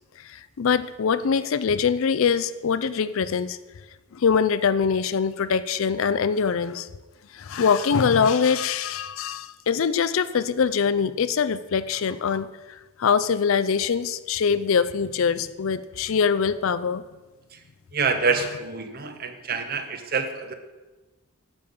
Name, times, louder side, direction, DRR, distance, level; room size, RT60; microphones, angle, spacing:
voice 1, 0.2-3.6 4.1-6.9 7.3-12.5 13.0-17.0, left 6 dB, 65° left, 14 dB, 0.4 m, -23 dB
voice 2, 17.9-20.5, right 4 dB, 45° right, 7 dB, 0.9 m, -26 dB
10.0 x 7.0 x 5.1 m, 1.2 s
head